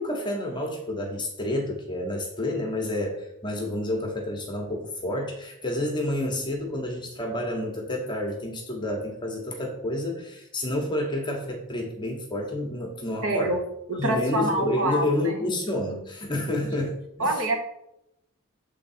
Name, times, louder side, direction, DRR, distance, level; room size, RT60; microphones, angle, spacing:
voice 1, 0.0-13.6 14.0-17.4, left 1 dB, 20° left, 1 dB, 0.9 m, -29 dB
voice 2, 13.2-13.6 13.9-15.3 17.2-17.5, right 1 dB, 65° right, 3 dB, 1.1 m, -26 dB
7.1 x 3.4 x 4.2 m, 0.81 s
head